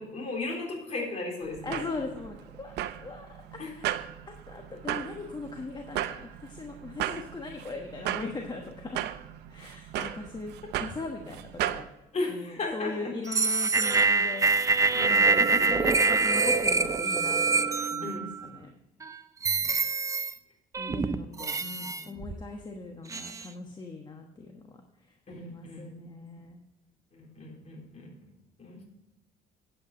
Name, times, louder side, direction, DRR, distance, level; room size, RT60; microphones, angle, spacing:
voice 1, 0.0-1.8 3.6-3.7 10.0-10.1 12.1-13.1 14.9-15.7 18.0-18.3 19.5-19.7 21.4-22.2 25.3-25.9 27.1-28.1 28.6-28.8, left 3 dB, 40° left, -1 dB, 4.0 m, -36 dB
sound 1, 1.4-11.9, right 12 dB, 80° right, 0.7 m, -36 dB
voice 2, 1.6-4.0 4.3-9.0 9.5-10.5 10.8-11.9 12.3-14.5 15.1-18.7 20.8-24.6 25.1-26.6, left 3 dB, 25° left, 3 dB, 1.2 m, -39 dB
sound 2, 13.3-18.5 19.0-19.1 19.4-20.3 20.7-22.4 23.1-23.5, right 3 dB, 20° right, 0.5 m, -25 dB
9.0 x 8.5 x 4.9 m, 0.94 s
cardioid pair, 110°, 17 cm